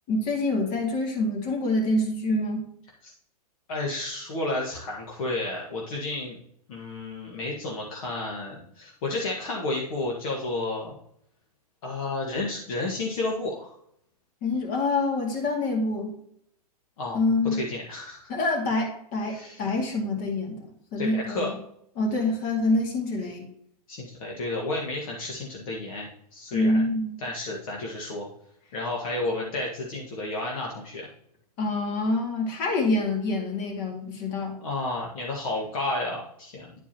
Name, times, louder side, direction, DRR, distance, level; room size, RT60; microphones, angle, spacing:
voice 1, 0.1-2.7 14.4-16.1 17.1-17.6 18.3-21.6 22.0-23.5 26.5-27.2 31.6-34.6, left 2 dB, 40° left, 1 dB, 2.3 m, -26 dB
voice 2, 3.7-6.4 6.7-10.9 11.8-13.7 17.0-17.2 17.5-18.3 19.3-19.6 21.0-21.5 23.9-26.8 27.2-28.3 28.7-31.1 34.6-36.7, left 2 dB, 60° left, -2 dB, 1.7 m, -31 dB
11.0 x 4.6 x 2.9 m, 0.69 s
hypercardioid pair, 120°, 20 cm